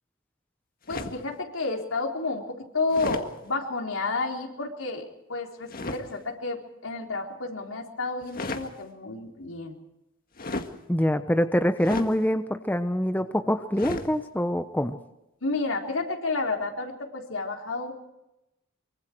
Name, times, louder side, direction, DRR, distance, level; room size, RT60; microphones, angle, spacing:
voice 1, 0.9-5.0 5.3-9.8 15.4-17.9, left 3 dB, 80° left, 2 dB, 3.9 m, -31 dB
sound 1, 0.9-1.3 2.9-3.3 5.7-6.0 8.2-8.7 10.4-10.8 11.8-12.1 13.8-14.1, left 2 dB, 45° left, 1.8 m, -33 dB
voice 2, 10.9-15.0, equal, 10° left, 8 dB, 0.9 m, -25 dB
24.5 x 24.0 x 4.7 m, 0.91 s
head